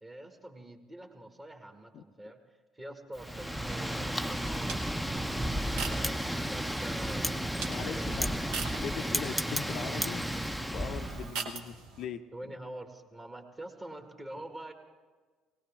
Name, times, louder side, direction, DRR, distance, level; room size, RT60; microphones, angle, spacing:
voice 1, 0.0-2.4 2.7-4.8 5.6-8.3 12.3-14.7, right 1 dB, 20° right, 4 dB, 1.8 m, -46 dB
Wind, 3.2-11.3, equal, 5° right, 0.6 m, -33 dB
sound 1, 3.3-12.0, right 5 dB, 60° right, 1.2 m, -44 dB
voice 2, 7.7-8.4 8.8-10.3 10.7-12.2, left 8 dB, 50° left, 8 dB, 0.5 m, -40 dB
20.0 x 18.5 x 3.5 m, 1.4 s
figure-of-eight pair, 55°, 0 cm